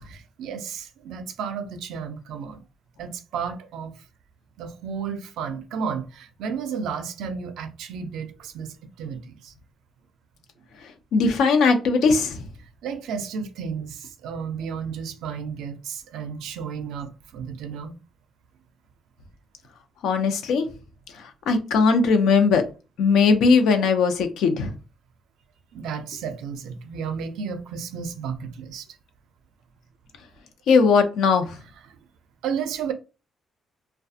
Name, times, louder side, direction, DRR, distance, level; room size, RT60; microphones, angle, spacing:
voice 1, 0.0-2.6 3.0-4.0 4.6-9.5 12.8-18.0 25.7-28.9 31.9-32.0 32.4-32.9, right 6 dB, 85° right, 0.4 m, -33 dB
voice 2, 10.8-12.5 20.0-20.7 21.1-22.6 23.0-24.8 30.7-31.6, left 5 dB, 80° left, 0.5 m, -19 dB
2.4 x 2.2 x 2.6 m
cardioid pair, 90°, 0 cm